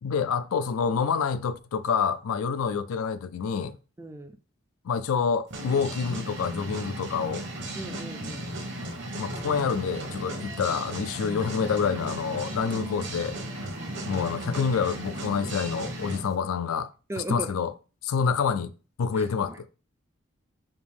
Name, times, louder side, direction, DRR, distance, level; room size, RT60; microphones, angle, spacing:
voice 1, 0.0-3.8 4.8-7.5 9.2-13.4 14.1-16.9 17.2-17.7 18.0-18.7 19.0-19.7, left 6 dB, 90° left, 0.4 m, -27 dB
voice 2, 4.0-4.4 7.7-8.5 13.7-14.0 17.1-17.5 19.2-19.6, right 2 dB, 15° right, 0.3 m, -37 dB
sound 1, 5.5-16.3, right 1 dB, 55° right, 1.0 m, -35 dB
5.0 x 2.6 x 3.4 m
head